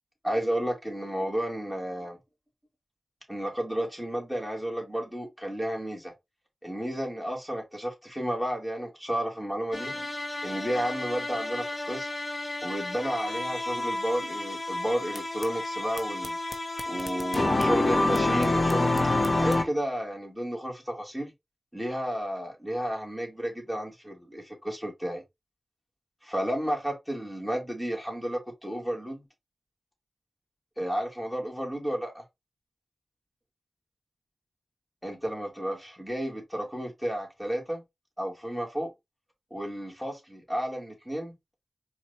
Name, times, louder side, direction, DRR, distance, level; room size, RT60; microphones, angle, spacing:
voice 1, 0.2-2.2 3.3-6.1 6.6-9.9 10.4-12.1 12.6-16.4 16.9-18.9 19.4-21.3 21.7-25.2 26.2-29.2 30.8-32.2 35.0-37.8 38.2-38.9 39.5-41.3, equal, ahead, 2.2 m, -32 dB
sound 1, 9.7-19.6, left 2 dB, 45° left, 0.8 m, -29 dB
4.5 x 2.6 x 2.8 m
cardioid pair, 45°, 0 cm